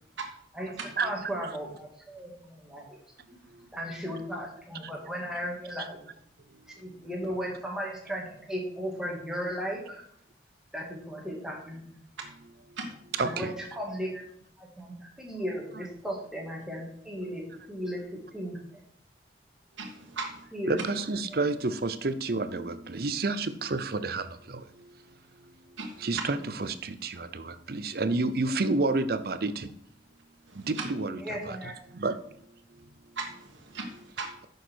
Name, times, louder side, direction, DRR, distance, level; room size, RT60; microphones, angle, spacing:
voice 1, 0.5-3.0 3.7-6.1 6.8-10.0 10.7-12.0 13.2-14.2 14.6-17.4 17.7-18.8 20.5-20.8 21.3-21.4 31.2-31.7, equal, 5° right, -2 dB, 2.1 m, -36 dB
voice 2, 19.8-20.4 25.8-26.0 30.5-30.9 33.2-34.3, right 4 dB, 90° right, 1 dB, 1.4 m, -38 dB
voice 3, 20.7-24.2 26.0-29.7 30.7-31.2 31.5-31.6 32.0-32.1, right 3 dB, 55° right, 12 dB, 0.6 m, -29 dB
9.2 x 6.5 x 4.5 m, 0.67 s
head